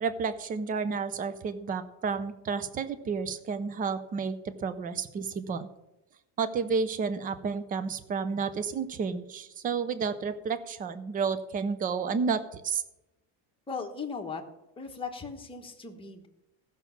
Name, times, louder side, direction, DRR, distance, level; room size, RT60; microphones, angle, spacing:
voice 1, 0.0-5.7 6.4-12.8, right 5 dB, 20° right, 13 dB, 0.4 m, -31 dB
voice 2, 13.7-14.4 14.8-16.3, left 5 dB, 10° left, 2 dB, 1.1 m, -38 dB
14.5 x 5.9 x 7.0 m, 0.92 s
cardioid pair, 160°, 49 cm